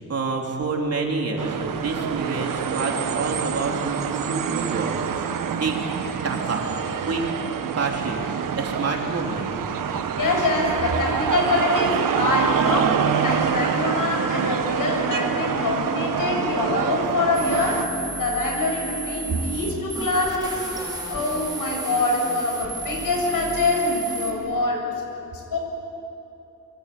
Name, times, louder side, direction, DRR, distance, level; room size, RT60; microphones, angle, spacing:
voice 1, 0.1-5.8 6.2-6.7 7.0-7.3 7.8-8.2 8.6-9.5, right 3 dB, 50° right, 1 dB, 3.5 m, -28 dB
sound 1, 1.4-17.8, right 7 dB, 75° right, 1.4 m, -26 dB
voice 2, 10.2-20.7 21.1-24.9 25.5-25.6, left 2 dB, 80° left, 0 dB, 7.6 m, -24 dB
sound 2, 17.3-24.3, right 2 dB, 10° right, 3.9 m, -33 dB
25.5 x 25.0 x 8.6 m, 2.8 s
wide cardioid pair, 165°, 33 cm